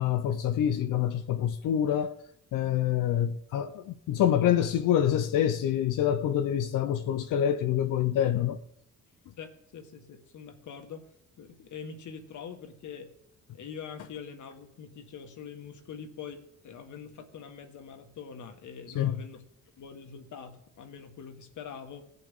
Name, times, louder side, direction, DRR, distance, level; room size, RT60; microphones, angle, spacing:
voice 1, 0.0-2.1 2.5-8.6 18.9-19.2, left 10 dB, 85° left, 0.8 m, -26 dB
voice 2, 9.4-11.1 11.4-13.1 13.5-19.5 19.8-22.1, left 6 dB, 70° left, 1.8 m, -44 dB
18.0 x 7.7 x 3.7 m
cardioid pair, 85°, 31 cm